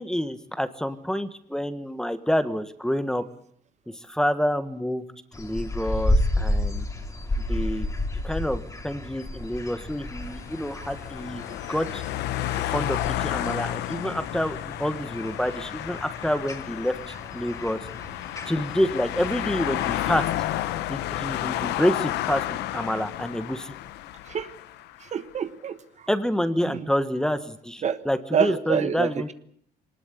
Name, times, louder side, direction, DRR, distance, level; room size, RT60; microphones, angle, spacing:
voice 1, 0.0-3.2 4.1-5.0 5.4-6.9 7.5-7.9 8.2-11.4 11.7-12.0 12.7-17.8 18.5-20.3 20.9-23.7 26.1-29.3, equal, 5° left, 11 dB, 1.5 m, -28 dB
sound 1, 5.3-20.5, left 1 dB, 20° left, 3.3 m, -32 dB
sound 2, 9.6-25.0, left 14 dB, 85° left, 1.0 m, -32 dB
voice 2, 25.0-26.1 26.7-26.9 27.8-28.0 28.3-29.3, right 7 dB, 45° right, 11 dB, 1.3 m, -27 dB
22.0 x 19.5 x 8.4 m, 0.64 s
cardioid pair, 110°, 17 cm